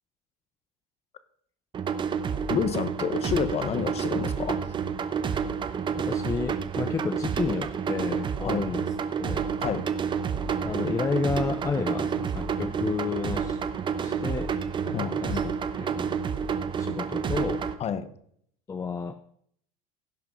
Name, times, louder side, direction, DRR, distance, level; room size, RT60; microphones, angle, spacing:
sound 1, 1.7-17.7, right 7 dB, 25° right, 0.9 m, -29 dB
voice 1, 2.5-4.6 8.4-8.7 9.6-9.9 14.9-15.5 17.8-18.1, left 7 dB, 35° left, 13 dB, 1.1 m, -29 dB
voice 2, 5.9-9.5 10.6-13.6 14.0-14.5 14.8-16.2 16.8-17.7 18.7-19.1, left 4 dB, 15° left, 9 dB, 0.6 m, -31 dB
16.5 x 5.8 x 5.4 m, 0.65 s
supercardioid pair, 125°, 19 cm